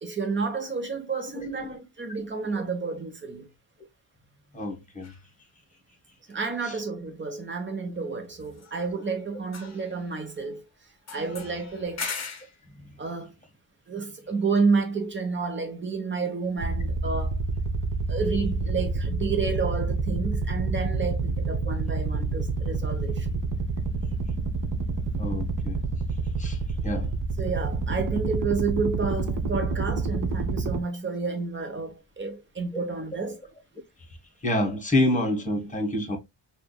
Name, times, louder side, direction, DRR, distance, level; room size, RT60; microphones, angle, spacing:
voice 1, 0.0-3.5 6.3-10.6 11.1-12.1 13.0-13.3 13.9-17.4 18.1-23.3 27.4-33.4, right 4 dB, 25° right, 1.1 m, -30 dB
voice 2, 4.5-5.1 12.8-12.9 25.2-25.8 26.4-26.6 26.8-27.1 34.4-36.2, left 1 dB, 15° left, 1.4 m, -27 dB
sound 1, 5.0-5.2 8.4-9.2 9.4-10.6 11.1-12.6, left 5 dB, 35° left, 1.1 m, -39 dB
sound 2, 16.6-30.8, right 3 dB, 45° right, 0.6 m, -28 dB
5.0 x 2.7 x 2.3 m
cardioid pair, 120°, 45 cm